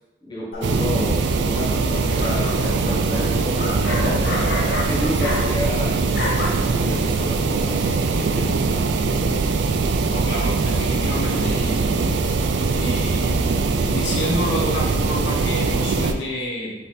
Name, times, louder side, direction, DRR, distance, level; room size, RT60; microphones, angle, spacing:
voice 1, 0.2-3.8 4.8-6.1 6.6-9.2, left 1 dB, 25° left, -6 dB, 1.1 m, -31 dB
sound 1, 0.5-1.0 1.8-5.8 6.0-6.5, left 2 dB, 60° left, 0.9 m, -29 dB
sound 2, 0.6-16.1, right 4 dB, 70° right, 0.4 m, -21 dB
voice 2, 10.1-11.9 12.7-13.5 13.9-16.7, left 1 dB, 85° left, -3 dB, 1.2 m, -28 dB
3.9 x 3.4 x 4.1 m, 1.1 s
head